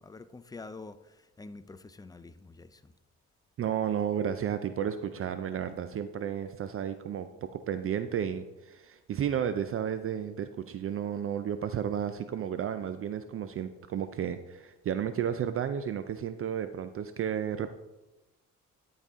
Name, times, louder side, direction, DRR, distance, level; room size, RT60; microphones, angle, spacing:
voice 1, 0.0-2.9, left 3 dB, 15° left, 12 dB, 0.4 m, -47 dB
voice 2, 3.6-17.7, right 9 dB, 45° right, 10 dB, 0.4 m, -32 dB
12.0 x 4.1 x 3.6 m, 1.1 s
cardioid pair, 90°, 30 cm